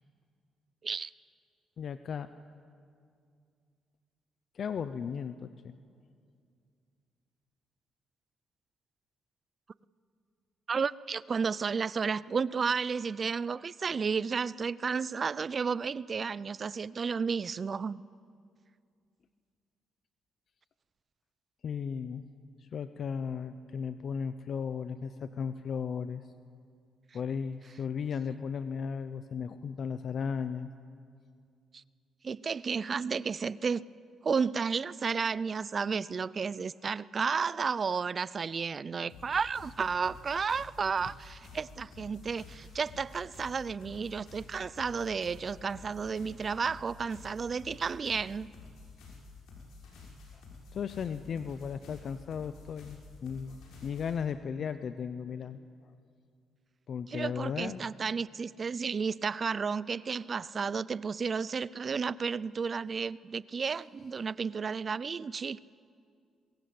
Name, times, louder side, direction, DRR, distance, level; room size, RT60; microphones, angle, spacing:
voice 1, 1.8-2.3 4.5-5.8 21.6-22.2 22.6-26.2 27.1-30.7 50.7-55.6 56.9-57.8, left 6 dB, 55° left, 11 dB, 0.8 m, -36 dB
voice 2, 10.7-18.0 31.7-31.8 32.2-33.8 34.2-48.5 57.1-65.6, right 5 dB, 40° right, 19 dB, 0.5 m, -32 dB
sound 1, 39.1-54.2, left 3 dB, 85° left, 5.7 m, -51 dB
23.0 x 21.0 x 7.9 m, 2.3 s
cardioid pair, 90°, 0 cm